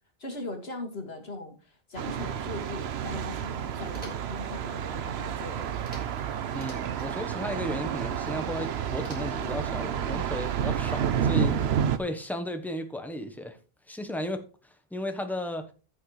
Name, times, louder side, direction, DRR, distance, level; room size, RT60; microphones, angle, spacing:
voice 1, 0.2-5.8, left 2 dB, 75° left, 2.3 m, -40 dB
Thunder, 2.0-12.0, right 8 dB, 85° right, 1.0 m, -30 dB
sound 1, 3.8-4.4 5.8-6.2 6.5-7.1 9.0-9.6, right 1 dB, 60° right, 3.3 m, -46 dB
voice 2, 6.5-13.6 13.9-15.7, left 1 dB, ahead, 1.1 m, -35 dB
15.0 x 6.5 x 3.3 m
omnidirectional pair, 1.0 m